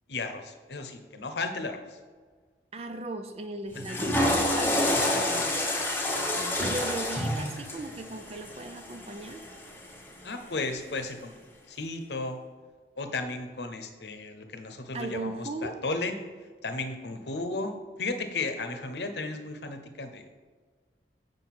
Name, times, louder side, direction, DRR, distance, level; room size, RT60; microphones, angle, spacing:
voice 1, 0.1-2.0 3.7-3.8 4.9-5.6 10.2-11.3 11.7-12.4 13.0-16.1 16.6-20.3, left 3 dB, 75° left, 7 dB, 0.9 m, -34 dB
voice 2, 2.7-5.7 6.3-9.4 14.9-15.8, right 2 dB, 35° right, 7 dB, 0.4 m, -37 dB
Water / Toilet flush, 3.7-10.0, left 1 dB, 10° left, 1.0 m, -28 dB
7.4 x 5.3 x 5.9 m, 1.5 s
head